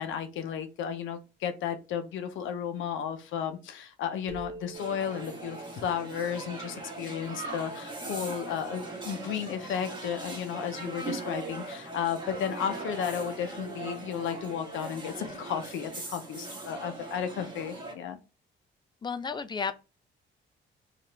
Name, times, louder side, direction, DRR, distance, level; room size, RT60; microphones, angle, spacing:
voice 1, 0.0-18.2, left 8 dB, 80° left, 0.6 m, -33 dB
sound 1, 4.3-7.8, right 3 dB, 90° right, 0.7 m, -47 dB
sound 2, 4.7-17.9, right 3 dB, 25° right, 1.3 m, -40 dB
voice 2, 19.0-19.7, left 5 dB, 25° left, 0.4 m, -32 dB
2.8 x 2.4 x 3.2 m
cardioid pair, 90°, 20 cm